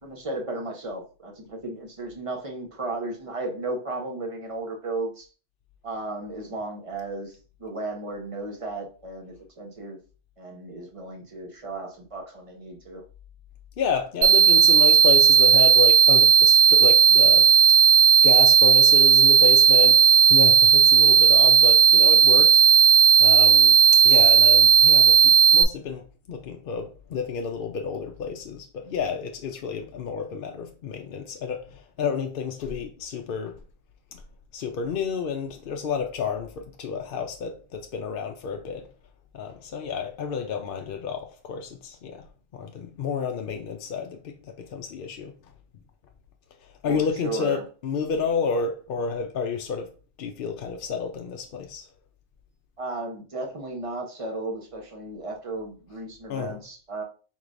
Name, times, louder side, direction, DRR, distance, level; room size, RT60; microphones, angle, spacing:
voice 1, 0.0-5.3 5.8-10.0 10.4-13.0 46.8-47.6 52.8-57.0, right 2 dB, 30° right, 0.9 m, -34 dB
voice 2, 13.8-17.5 18.2-22.6 23.2-23.8 24.0-26.0 26.3-33.6 34.1-34.2 34.5-38.9 39.3-42.2 42.5-44.3 44.7-45.3 46.8-49.9 50.2-51.9 56.3-56.6, left 6 dB, 60° left, 0.7 m, -30 dB
sound 1, 14.2-25.6, right 7 dB, 70° right, 0.8 m, -15 dB
4.8 x 3.7 x 2.5 m
omnidirectional pair, 1.2 m